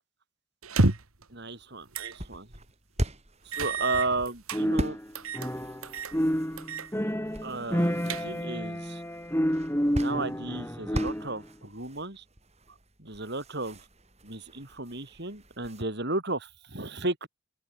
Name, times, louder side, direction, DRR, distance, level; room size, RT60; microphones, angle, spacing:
sound 1, 0.6-1.2 1.9-2.2 2.6-2.7 3.5-4.6 5.1-5.5 5.8-6.2 6.6-6.9 7.2-7.3 7.8-8.6, right 2 dB, 75° right, 2.2 m, -29 dB
voice 1, 1.3-2.5 3.5-5.0 7.4-9.0 10.0-12.2 13.0-13.8 14.2-17.3, right 2 dB, 50° right, 3.9 m, -34 dB
sound 2, 1.8-15.8, equal, 30° right, 6.1 m, -40 dB
sound 3, 4.5-5.9 6.1-11.4, equal, 10° left, 6.6 m, -29 dB
open air
head